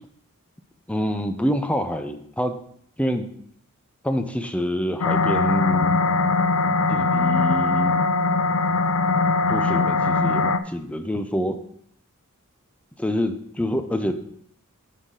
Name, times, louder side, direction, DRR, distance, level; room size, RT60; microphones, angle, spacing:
voice 1, 0.9-2.6 3.0-3.3 4.0-6.0 6.9-8.0 9.5-11.6 13.0-14.1, equal, 5° left, 7 dB, 0.5 m, -26 dB
sound 1, 5.0-10.6, left 3 dB, 75° left, 0.5 m, -21 dB
9.4 x 6.5 x 3.8 m, 0.66 s
head